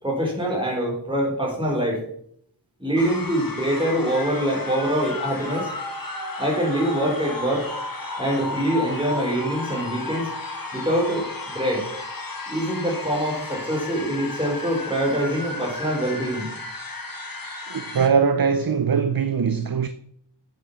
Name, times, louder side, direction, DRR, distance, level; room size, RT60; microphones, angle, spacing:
voice 1, 0.0-2.0 2.8-5.7 6.4-7.7 8.2-10.3 10.7-11.9 12.5-16.5, equal, 10° right, 4.1 m, -24 dB
sound 1, 3.0-18.1, left 2 dB, 50° left, 1.7 m, -33 dB
voice 2, 17.7-19.9, right 6 dB, 50° right, 0.7 m, -21 dB
8.8 x 7.3 x 7.2 m
wide cardioid pair, 45°, 44 cm